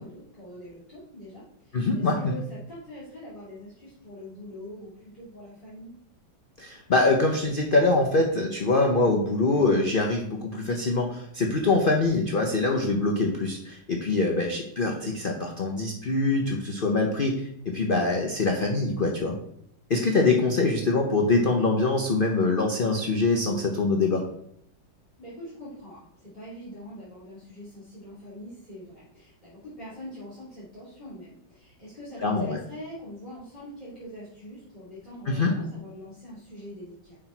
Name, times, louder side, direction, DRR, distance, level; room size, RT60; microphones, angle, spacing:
voice 1, 0.0-5.9 25.2-37.2, left 1 dB, 30° left, -11 dB, 2.9 m, -43 dB
voice 2, 1.7-2.3 6.6-19.3 19.9-24.2 32.2-32.6 35.3-35.5, left 3 dB, 85° left, 1 dB, 0.4 m, -24 dB
5.7 x 5.0 x 4.5 m, 0.71 s
omnidirectional pair, 2.1 m